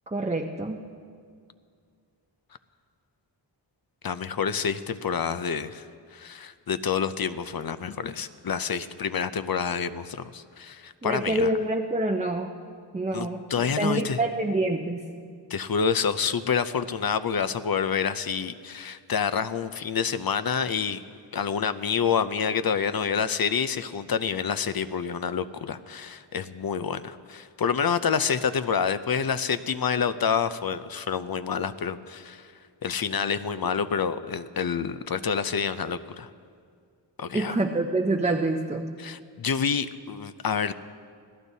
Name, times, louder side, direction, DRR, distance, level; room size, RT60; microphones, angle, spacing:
voice 1, 0.1-0.8 11.0-12.6 12.9-13.5 13.8-15.0 37.3-38.9, right 2 dB, 15° right, 1 dB, 0.7 m, -26 dB
voice 2, 4.0-5.9 6.1-11.5 13.1-14.2 15.5-21.0 21.3-32.5 32.8-36.3 37.2-37.6 39.0-40.7, left 6 dB, 50° left, 12 dB, 0.6 m, -28 dB
26.5 x 16.5 x 2.8 m, 2.2 s
wide cardioid pair, 100°, 46 cm